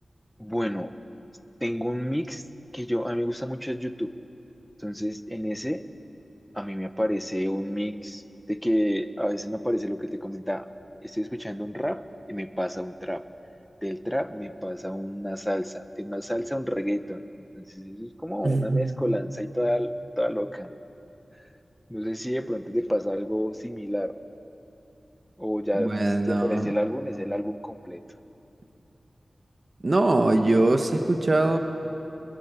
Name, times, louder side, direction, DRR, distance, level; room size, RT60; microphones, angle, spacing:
voice 1, 0.4-0.9 1.6-2.4 2.7-4.1 4.8-5.8 6.5-10.7 11.0-12.0 12.3-13.2 13.8-17.2 17.6-20.7 21.9-24.1 25.4-28.0, equal, 5° left, 9 dB, 1.2 m, -29 dB
voice 2, 18.4-19.0 25.7-26.7 29.8-31.6, right 2 dB, 50° right, 5 dB, 1.5 m, -22 dB
25.5 x 21.0 x 8.4 m, 3.0 s
cardioid pair, 50°, 0 cm